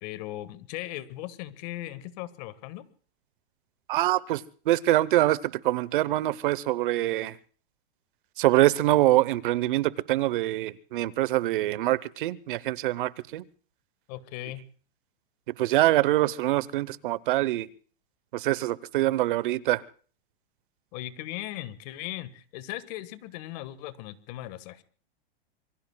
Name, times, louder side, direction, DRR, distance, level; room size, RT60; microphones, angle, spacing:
voice 1, 0.0-2.8 14.1-14.6 20.9-24.8, left 15 dB, 40° left, 15 dB, 1.5 m, -38 dB
voice 2, 3.9-7.3 8.4-13.4 15.6-17.7 18.3-19.8, right 16 dB, 55° right, 21 dB, 0.9 m, -24 dB
27.0 x 23.5 x 2.3 m, 0.41 s
supercardioid pair, 155°, 30 cm